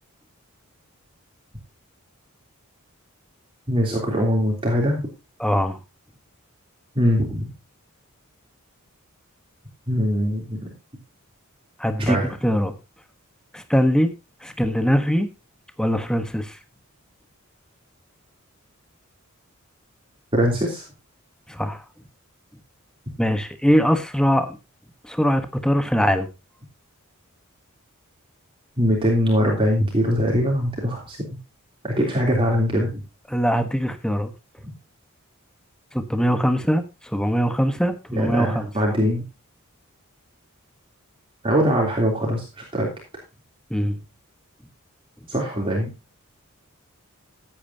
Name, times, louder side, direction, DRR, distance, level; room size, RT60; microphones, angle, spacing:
voice 1, 3.7-5.1 6.9-7.5 9.9-10.7 12.0-12.3 20.3-20.8 28.8-31.2 31.8-32.9 38.1-39.2 41.4-42.9 45.3-45.9, equal, 25° right, -2 dB, 3.2 m, -22 dB
voice 2, 5.4-5.8 11.8-12.2 12.4-12.7 13.5-14.1 14.4-15.3 15.8-16.6 21.5-21.8 23.2-24.6 25.0-26.3 33.3-34.3 35.9-36.8 37.1-38.7 43.7-44.0, equal, 5° left, 8 dB, 1.1 m, -21 dB
15.5 x 8.9 x 2.8 m, 0.27 s
head